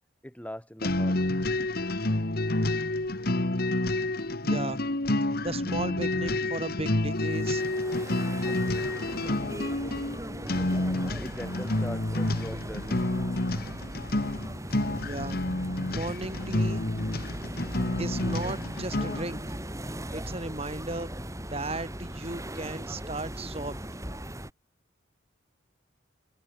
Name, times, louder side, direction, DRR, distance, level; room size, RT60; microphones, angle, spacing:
voice 1, 0.2-1.2 11.2-13.0, equal, 5° left, 3.2 m, -41 dB
sound 1, 0.8-19.4, left 1 dB, 55° left, 1.7 m, -29 dB
voice 2, 4.4-4.8 5.4-7.6 15.0-15.4 15.9-16.8 18.0-19.6 20.1-21.1 21.4-23.7, right 2 dB, 30° right, 6.8 m, -35 dB
sound 2, 7.1-24.5, right 1 dB, 15° right, 4.7 m, -39 dB
head